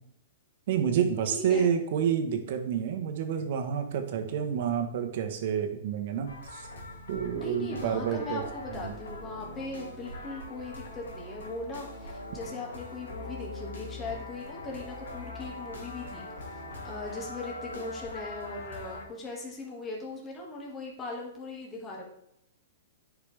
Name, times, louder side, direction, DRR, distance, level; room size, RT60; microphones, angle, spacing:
voice 1, 0.7-6.7 7.1-8.4 8.7-8.9, right 8 dB, 60° right, 5 dB, 1.3 m, -29 dB
voice 2, 1.3-1.7 7.3-16.6 16.8-22.1, left 3 dB, 20° left, -2 dB, 2.1 m, -39 dB
sound 1, 6.3-19.0, left 2 dB, 85° left, 2.0 m, -42 dB
10.0 x 4.9 x 3.5 m, 0.77 s
hypercardioid pair, 125°, 0 cm